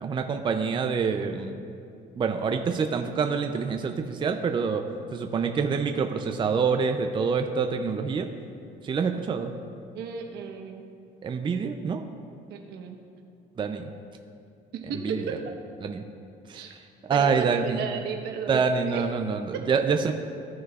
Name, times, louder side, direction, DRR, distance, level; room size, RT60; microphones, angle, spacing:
voice 1, 0.0-1.6 2.1-4.8 5.1-8.3 8.8-9.5 11.2-12.1 13.6-13.8 15.0-15.4 15.8-16.1 16.5-16.6 17.1-17.8 18.5-20.1, right 5 dB, 30° right, 5 dB, 0.5 m, -26 dB
voice 2, 9.9-10.9 12.5-13.0 14.7-15.4 16.5-16.7 17.1-19.0 19.5-19.7, right 6 dB, 75° right, 3 dB, 1.1 m, -34 dB
15.5 x 6.2 x 2.4 m, 2.5 s
cardioid pair, 110°, 17 cm